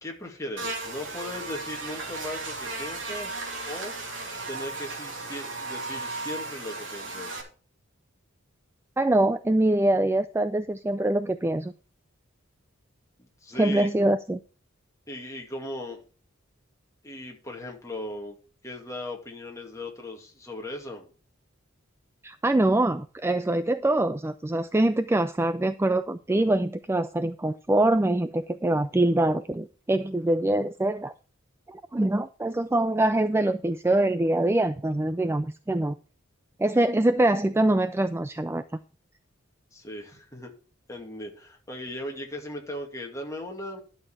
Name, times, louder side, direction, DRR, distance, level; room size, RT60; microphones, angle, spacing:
voice 1, 0.0-3.9 4.5-7.4 13.2-13.9 15.1-16.0 17.0-18.4 18.6-21.1 39.7-40.5 40.9-43.8, left 1 dB, 15° left, 1 dB, 2.4 m, -38 dB
Buzz, 0.6-7.4, right 3 dB, 65° right, 3.0 m, -35 dB
voice 2, 9.0-11.7 13.6-14.4 22.2-31.1 31.7-36.0 36.6-38.6, right 1 dB, 10° right, 11 dB, 0.4 m, -24 dB
11.5 x 6.5 x 4.7 m, 0.37 s
head